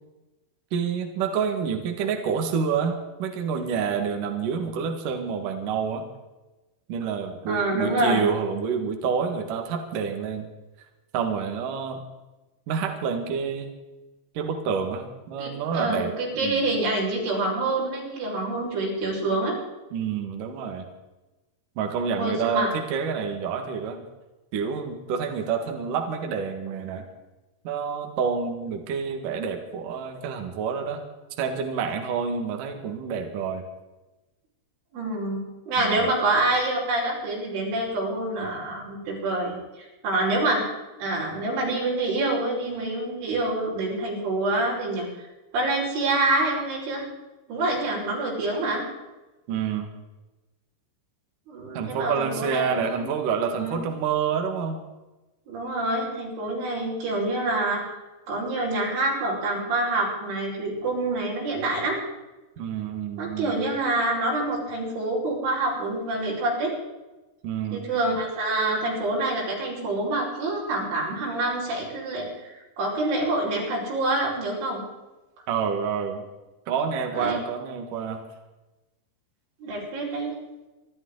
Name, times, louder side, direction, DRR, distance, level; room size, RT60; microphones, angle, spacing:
voice 1, 0.7-6.1 6.9-10.5 11.1-12.0 12.7-13.7 14.3-16.6 19.9-20.9 21.8-24.0 24.5-27.1 27.6-31.0 31.4-33.6 35.8-36.1 49.5-49.9 51.7-54.8 62.6-63.6 67.4-67.9 75.5-76.2 76.7-78.2, right 6 dB, 55° right, 4 dB, 2.8 m, -28 dB
voice 2, 7.5-8.2 15.4-19.6 22.2-22.7 34.9-40.7 41.0-45.1 45.5-47.1 47.5-48.8 51.5-53.1 53.6-53.8 55.5-57.8 58.3-62.0 63.2-66.7 67.7-72.3 72.5-74.8 77.1-77.4 79.6-80.3, right 2 dB, 90° right, -5 dB, 7.7 m, -26 dB
27.0 x 12.5 x 4.0 m, 1.1 s
omnidirectional pair, 5.3 m